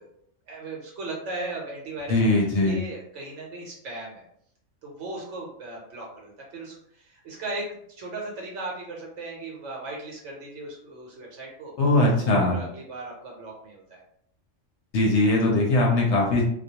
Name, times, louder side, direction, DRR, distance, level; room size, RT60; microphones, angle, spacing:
voice 1, 0.5-4.2 4.8-11.7 12.1-14.0, right 2 dB, 70° right, -2 dB, 0.9 m, -37 dB
voice 2, 2.1-2.8 11.8-12.5 14.9-16.4, left 2 dB, 65° left, -2 dB, 0.8 m, -20 dB
2.3 x 2.1 x 2.7 m, 0.68 s
omnidirectional pair, 1.3 m